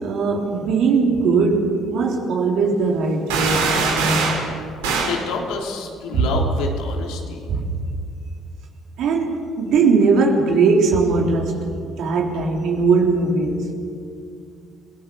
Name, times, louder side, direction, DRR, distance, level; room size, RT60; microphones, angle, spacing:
voice 1, 0.0-4.4 6.1-6.3 7.5-7.6 9.0-13.7, right 4 dB, 70° right, 3.7 m, -20 dB
sound 1, 3.3-4.5 4.8-5.2, right 4 dB, 90° right, 3.8 m, -21 dB
voice 2, 4.8-7.5, left 4 dB, 80° left, 3.3 m, -28 dB
30.0 x 18.0 x 5.5 m
supercardioid pair, 65°, 0 cm